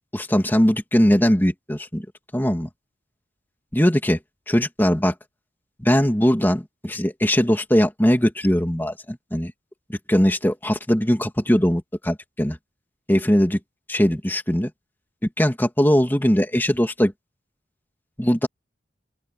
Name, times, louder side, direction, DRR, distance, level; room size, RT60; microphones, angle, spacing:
voice 1, 0.1-2.1 2.3-2.7 3.7-4.2 4.5-5.1 5.8-9.5 10.1-12.6 13.1-13.6 13.9-14.7 15.4-17.1 18.2-18.5, equal, 10° left, 2.6 m, -20 dB
open air
head